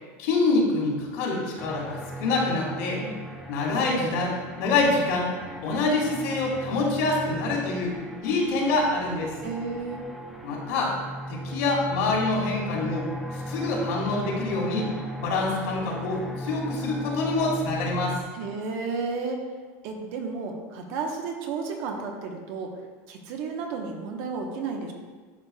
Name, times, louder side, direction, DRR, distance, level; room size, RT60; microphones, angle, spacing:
voice 1, 0.2-3.0 3.5-5.3 5.6-7.9 8.2-9.3 10.4-10.9 11.3-13.1 13.3-14.9 15.2-18.2, left 3 dB, 80° left, -2 dB, 2.1 m, -26 dB
sound 1, 1.6-18.2, equal, 5° right, 0.6 m, -37 dB
voice 2, 9.4-10.0 18.3-19.4 19.8-22.7 23.1-24.9, right 4 dB, 60° right, 2 dB, 1.0 m, -32 dB
11.0 x 5.0 x 2.3 m, 1.4 s
supercardioid pair, 155°, 8 cm